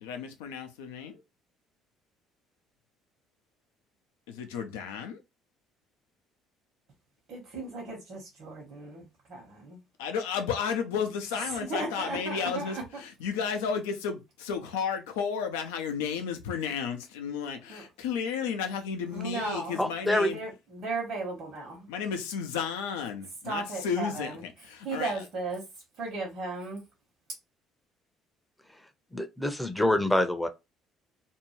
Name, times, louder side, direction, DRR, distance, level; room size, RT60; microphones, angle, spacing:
voice 1, 0.0-1.2 4.3-5.2 10.0-20.4 21.9-25.3, left 6 dB, 80° left, 0.5 m, -33 dB
voice 2, 7.3-9.0 9.3-9.8 11.7-12.8 17.7-17.8 19.1-21.9 23.4-24.3 24.8-25.6 26.0-26.8, right 3 dB, 60° right, 1.1 m, -36 dB
voice 3, 19.8-20.3 29.1-30.5, left 1 dB, 5° left, 0.6 m, -26 dB
2.7 x 2.2 x 3.0 m
hypercardioid pair, 55°, 0 cm